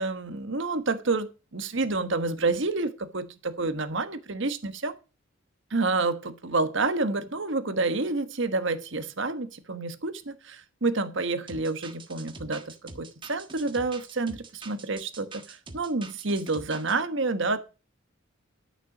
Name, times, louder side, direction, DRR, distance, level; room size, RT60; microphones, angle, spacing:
voice 1, 0.0-4.9 5.7-17.6, right 3 dB, 60° right, 1.3 m, -29 dB
sound 1, 11.5-17.0, right 3 dB, 25° right, 1.4 m, -45 dB
12.0 x 6.8 x 6.0 m
head